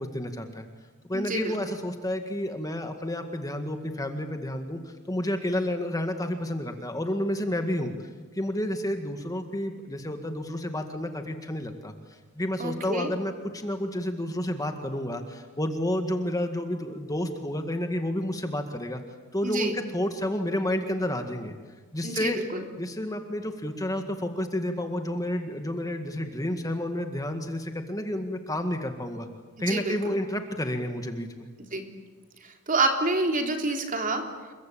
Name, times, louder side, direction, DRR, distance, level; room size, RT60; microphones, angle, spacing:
voice 1, 0.1-0.7 1.1-8.1 8.3-11.9 12.3-19.0 19.3-21.5 21.9-22.4 22.8-29.3 29.6-31.5, left 1 dB, 15° left, 6 dB, 1.9 m, -30 dB
voice 2, 1.1-1.6 12.6-13.1 19.4-19.8 22.0-22.6 29.6-30.1 31.6-31.9 32.4-34.5, right 2 dB, 40° right, 4 dB, 3.6 m, -28 dB
29.5 x 23.0 x 8.7 m, 1.4 s
head